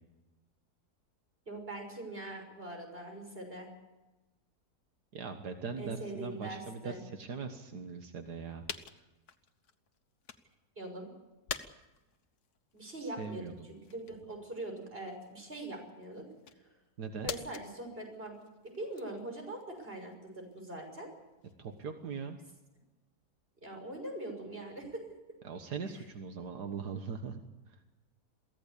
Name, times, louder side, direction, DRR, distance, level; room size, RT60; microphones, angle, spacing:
voice 1, 1.5-3.7 5.8-7.0 10.8-11.1 12.7-13.5 13.8-16.3 16.6-16.7 17.2-18.4 18.6-21.1 23.6-25.1, right 2 dB, 35° right, 3 dB, 6.4 m, -42 dB
voice 2, 5.1-8.7 8.9-9.0 13.0-13.7 17.0-17.3 21.6-22.4 25.4-27.4 27.7-27.8, right 5 dB, 85° right, 6 dB, 2.0 m, -41 dB
sound 1, 8.7-10.6 11.0-22.1, left 7 dB, 75° left, 1.7 m, -48 dB
23.0 x 16.5 x 8.4 m, 1.1 s
omnidirectional pair, 1.7 m